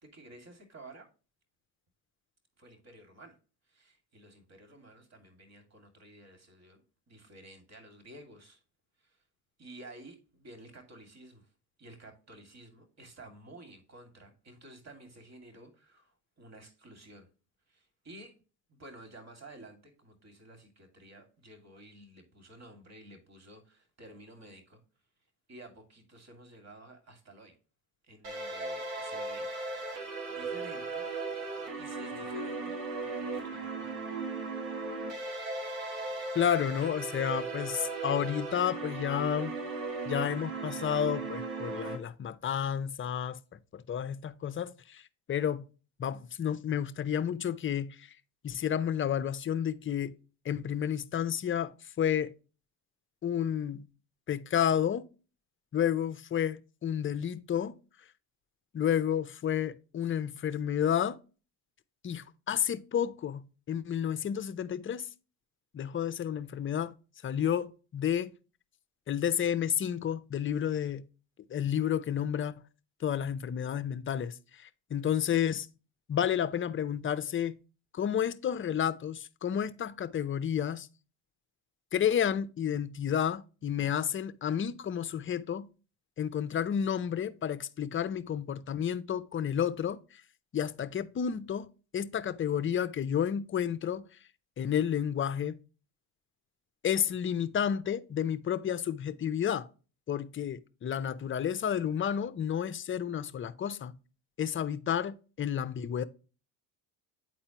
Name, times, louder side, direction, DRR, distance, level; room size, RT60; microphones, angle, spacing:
voice 1, 0.0-1.1 2.6-3.4 3.7-8.6 9.0-9.2 9.6-11.5 11.8-17.3 17.7-18.4 18.7-24.8 25.5-27.6 28.0-29.5 30.3-31.1 31.4-31.5 31.8-34.0, right 1 dB, 35° right, 2.3 m, -52 dB
sound 1, 28.2-42.0, right 3 dB, 90° right, 1.5 m, -37 dB
voice 2, 36.3-39.5 40.1-43.4 43.7-45.6 46.0-48.1 48.4-50.2 50.4-52.3 53.2-53.9 54.3-55.0 55.7-57.7 58.7-61.2 62.0-65.1 65.7-66.9 67.2-68.3 69.1-71.0 71.5-72.6 73.0-75.7 76.1-77.6 77.9-80.9 81.9-85.7 86.2-90.2 90.5-91.7 91.9-94.1 94.6-95.6 96.8-99.7 100.1-104.0 104.4-106.0, left 9 dB, 25° left, 0.6 m, -31 dB
9.0 x 4.2 x 2.9 m
supercardioid pair, 75°, 47 cm